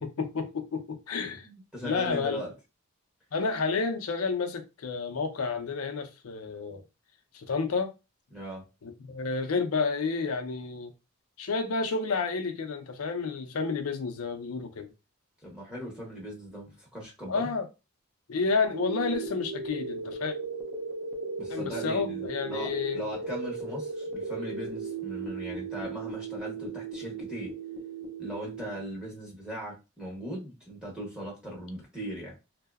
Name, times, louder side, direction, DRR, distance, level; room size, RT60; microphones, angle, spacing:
voice 1, 0.0-1.5 1.8-2.4 3.3-6.8 7.3-7.9 8.8-10.9 11.4-14.9 17.3-17.7 18.3-20.4 21.5-23.0, left 4 dB, 75° left, 0.5 m, -30 dB
voice 2, 1.4-2.5 8.3-8.6 15.4-17.5 21.4-27.5 28.2-32.4, right 1 dB, 5° right, 0.7 m, -39 dB
sound 1, 18.7-28.7, right 4 dB, 35° right, 0.5 m, -36 dB
2.7 x 2.0 x 2.2 m
head